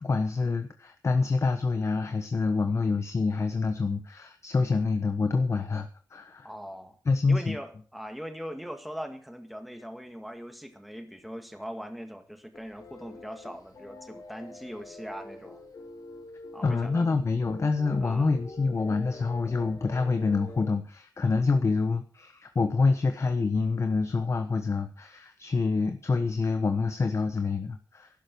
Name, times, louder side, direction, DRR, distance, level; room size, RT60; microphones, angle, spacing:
voice 1, 0.0-6.5 7.1-7.6 16.6-28.1, left 4 dB, 45° left, 7 dB, 1.2 m, -27 dB
voice 2, 6.4-7.0 7.3-15.6 16.5-17.2 18.0-18.3, equal, ahead, 6 dB, 2.0 m, -41 dB
sound 1, 12.5-20.7, left 2 dB, 60° left, 4.4 m, -46 dB
12.5 x 11.5 x 6.2 m, 0.40 s
wide cardioid pair, 130°, 7 cm